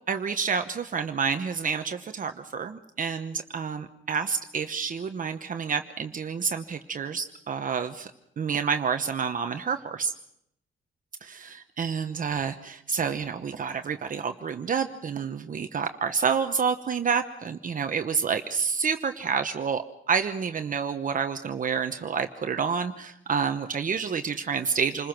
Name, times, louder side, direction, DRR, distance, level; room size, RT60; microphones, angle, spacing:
voice 1, 0.1-8.1 8.4-10.1 11.2-25.1, right 6 dB, 45° right, 7 dB, 1.0 m, -29 dB
28.0 x 20.5 x 6.0 m, 0.74 s
wide cardioid pair, 140°, 19 cm